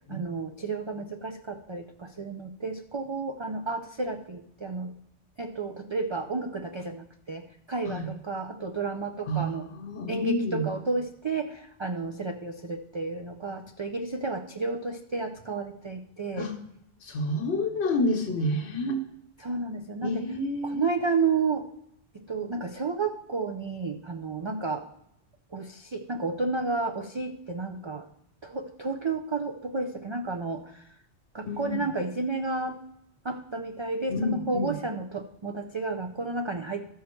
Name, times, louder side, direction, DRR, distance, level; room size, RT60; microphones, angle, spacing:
voice 1, 0.1-4.9 5.4-9.7 10.1-16.5 19.4-20.3 20.6-21.7 22.1-24.9 25.5-28.1 28.4-30.9 31.3-32.8 33.2-36.8, right 4 dB, 45° right, 5 dB, 0.4 m, -31 dB
voice 2, 9.3-10.7 16.4-16.5 17.0-19.0 20.0-20.9 31.4-31.9 34.1-34.8, left 1 dB, 90° left, 2 dB, 1.3 m, -29 dB
13.5 x 5.6 x 4.4 m, 0.80 s
omnidirectional pair, 1.1 m